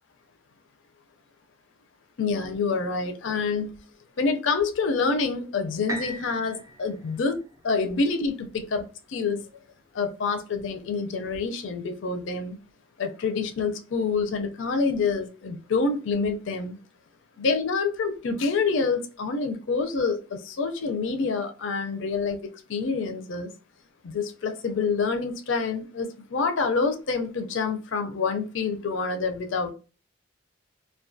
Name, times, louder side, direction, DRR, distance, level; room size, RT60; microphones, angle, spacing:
voice 1, 2.2-3.7 4.2-7.4 7.6-9.4 9.9-12.6 13.0-16.8 17.4-23.5 24.0-29.7, left 4 dB, 75° left, 0.4 m, -27 dB
sound 1, 5.9-9.8 10.4-10.5, equal, 15° right, 0.4 m, -40 dB
2.3 x 2.2 x 2.5 m
head